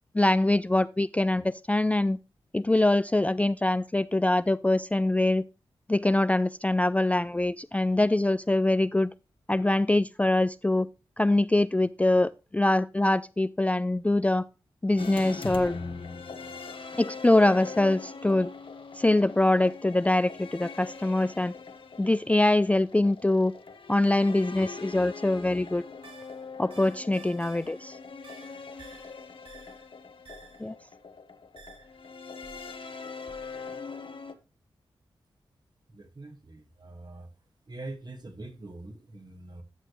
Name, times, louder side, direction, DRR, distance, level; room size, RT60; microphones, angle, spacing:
voice 1, 0.1-2.2 2.5-5.4 5.9-9.1 9.5-10.9 11.2-14.4 14.8-15.8 17.0-18.5 19.0-21.5 22.0-23.5 23.9-25.8 26.6-28.0 30.6-30.7, left 2 dB, 15° left, 0.4 m, -24 dB
sound 1, 15.0-34.3, left 4 dB, 60° left, 1.1 m, -42 dB
sound 2, 26.0-27.8 28.2-29.9 30.3-30.7 31.6-32.0 32.4-32.8 33.3-33.7, right 4 dB, 60° right, 5.7 m, -52 dB
voice 2, 35.9-37.3 37.7-39.6, right 2 dB, 45° right, 1.8 m, -43 dB
12.0 x 6.4 x 3.1 m
cardioid pair, 40°, 10 cm